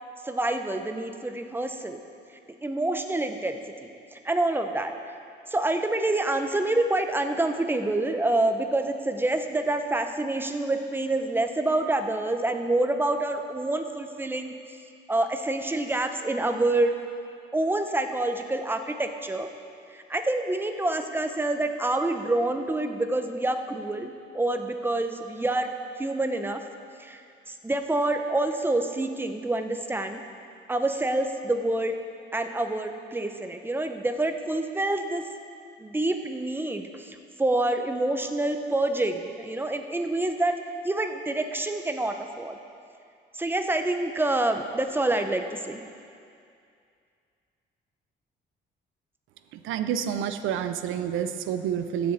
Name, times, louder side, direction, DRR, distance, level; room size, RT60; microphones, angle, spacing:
voice 1, 0.2-2.0 2.6-4.9 5.5-14.5 15.1-16.9 17.5-19.5 19.9-25.7 26.0-26.6 27.0-27.2 27.5-30.2 30.7-31.9 32.3-35.3 35.8-40.6 40.8-42.6 43.3-45.8, right 2 dB, 10° right, 6 dB, 0.7 m, -27 dB
voice 2, 49.5-52.1, right 9 dB, 85° right, 10 dB, 0.6 m, -29 dB
15.5 x 6.7 x 4.2 m, 2.4 s
cardioid pair, 90°, 20 cm